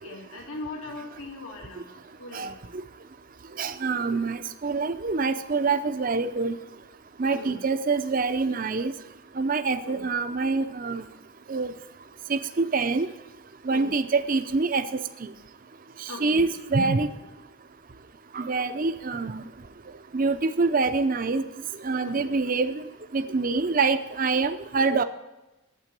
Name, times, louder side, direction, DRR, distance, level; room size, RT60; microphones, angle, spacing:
voice 1, 0.0-1.9 2.2-2.5 7.3-7.6 9.8-10.0 13.7-13.9 16.1-16.4 22.0-22.3, left 2 dB, 85° left, 0 dB, 2.7 m, -39 dB
voice 2, 3.6-6.6 7.2-8.9 9.4-11.0 11.5-11.7 12.3-13.1 13.7-14.8 16.2-17.1 18.3-19.4 20.1-21.4 21.8-22.9 23.1-25.0, right 4 dB, 40° right, 10 dB, 0.6 m, -25 dB
8.9 x 7.5 x 9.1 m, 1.0 s
head